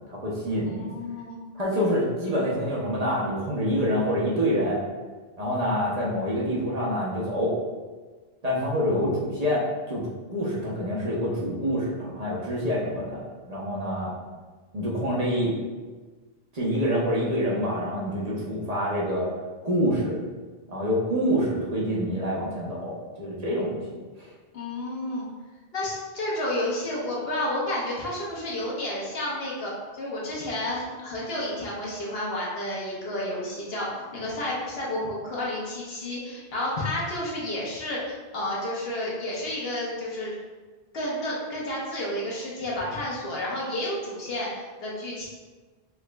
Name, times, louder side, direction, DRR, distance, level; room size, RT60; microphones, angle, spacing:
voice 1, 0.1-0.9 1.5-4.8 5.4-7.5 8.4-10.0 10.3-14.1 14.7-15.5 16.5-19.3 19.6-20.2 20.7-23.8 24.2-24.3, equal, 45° right, -6 dB, 0.7 m, -26 dB
voice 2, 0.6-1.4 24.5-25.2 25.7-40.3 40.9-45.3, left 1 dB, 75° left, -5 dB, 1.2 m, -31 dB
4.7 x 2.9 x 2.2 m, 1.4 s
omnidirectional pair, 1.0 m